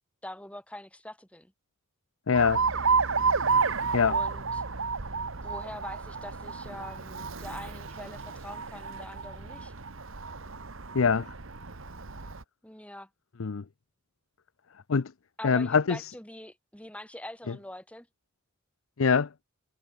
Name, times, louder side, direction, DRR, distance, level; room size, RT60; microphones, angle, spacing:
voice 1, 0.2-1.5 4.0-4.6 5.4-9.7 12.6-13.1 15.4-18.1, left 1 dB, 5° left, 6.5 m, -44 dB
voice 2, 2.3-2.6 3.9-4.2 10.9-11.3 13.4-13.6 14.9-15.1 15.4-16.1 17.5-17.6 19.0-19.3, left 5 dB, 65° left, 0.6 m, -24 dB
Alarm, 2.3-12.4, right 5 dB, 65° right, 1.5 m, -31 dB
head